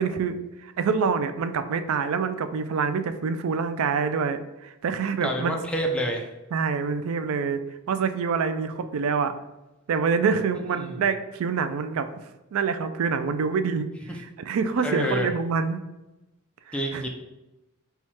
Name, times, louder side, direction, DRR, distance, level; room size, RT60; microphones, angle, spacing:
voice 1, 0.0-5.6 6.5-9.3 9.9-12.1 12.5-13.9 14.2-15.8 16.7-17.1, right 5 dB, 70° right, 10 dB, 0.4 m, -26 dB
voice 2, 5.2-6.3 10.8-10.9 14.1-14.2 14.8-15.3 16.7-17.1, equal, 5° left, 0 dB, 0.5 m, -28 dB
4.5 x 2.3 x 4.3 m, 0.99 s
head